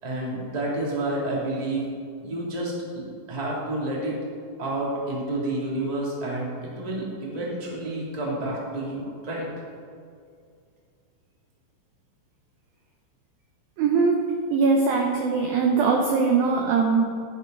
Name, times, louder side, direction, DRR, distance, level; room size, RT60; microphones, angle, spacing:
voice 1, 0.0-1.9 2.2-4.2 4.6-9.5, right 1 dB, 15° right, -4 dB, 1.7 m, -29 dB
voice 2, 13.8-14.2 14.5-17.0, right 4 dB, 75° right, 1 dB, 2.1 m, -21 dB
15.5 x 10.5 x 4.0 m, 2.3 s
omnidirectional pair, 5.5 m